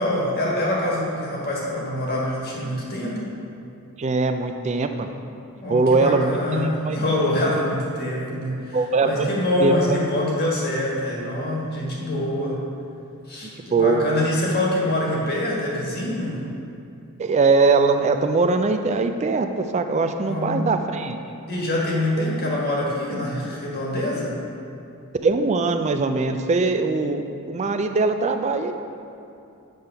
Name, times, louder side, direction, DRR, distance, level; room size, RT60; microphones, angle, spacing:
voice 1, 0.0-3.3 5.6-12.6 13.3-16.4 20.2-20.7 21.5-24.4, left 1 dB, 45° left, -4 dB, 1.4 m, -25 dB
voice 2, 4.0-5.1 5.7-7.0 8.7-9.3 9.6-10.0 13.6-14.0 17.2-21.2 25.2-28.7, right 3 dB, 30° right, 7 dB, 0.3 m, -21 dB
7.8 x 3.5 x 5.5 m, 2.7 s
head